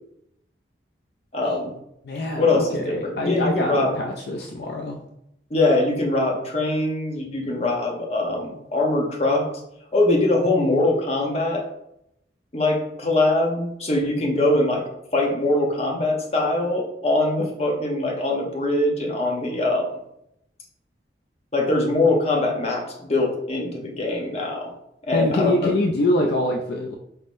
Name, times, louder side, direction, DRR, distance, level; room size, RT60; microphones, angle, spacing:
voice 1, 1.3-1.7 2.4-4.0 5.5-9.5 9.9-11.7 12.5-19.9 21.5-24.7 25.0-25.7, left 2 dB, 35° left, -1 dB, 0.8 m, -22 dB
voice 2, 2.0-5.0 25.1-27.0, left 1 dB, 65° left, 1 dB, 0.4 m, -24 dB
4.1 x 3.5 x 2.5 m, 0.79 s
head